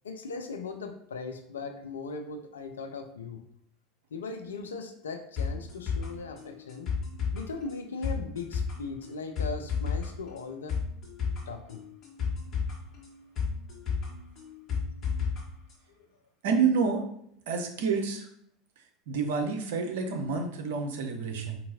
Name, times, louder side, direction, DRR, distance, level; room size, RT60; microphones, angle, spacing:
voice 1, 0.0-3.4 4.1-6.9 7.3-10.8 11.5-11.8 16.0-16.1, left 4 dB, 75° left, 6 dB, 0.4 m, -39 dB
sound 1, 5.4-15.4 15.7-15.8, left 6 dB, 40° left, 1.4 m, -33 dB
voice 2, 16.4-17.0 17.5-18.3 19.1-21.6, right 5 dB, 65° right, 4 dB, 0.6 m, -28 dB
4.4 x 2.7 x 2.8 m, 0.70 s
figure-of-eight pair, 75°, 0 cm